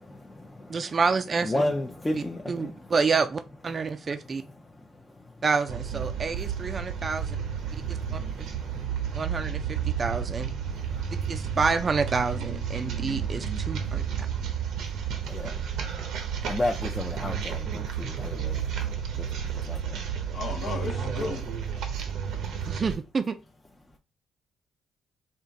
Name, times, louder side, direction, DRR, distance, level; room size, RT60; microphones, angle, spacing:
voice 1, 0.0-0.8 1.4-2.7 8.7-9.1 15.3-15.6 16.4-18.6 19.2-19.3 19.7-20.0, left 1 dB, 15° left, 0.5 m, -32 dB
voice 2, 0.7-1.7 2.1-4.4 5.4-7.4 7.9-8.2 9.1-10.5 11.3-14.0 22.7-23.4, right 4 dB, 40° right, 0.4 m, -28 dB
sound 1, 5.7-23.0, right 8 dB, 80° right, 0.7 m, -32 dB
voice 3, 20.3-21.5, left 3 dB, 70° left, 0.9 m, -34 dB
3.6 x 2.4 x 3.9 m
cardioid pair, 90°, 0 cm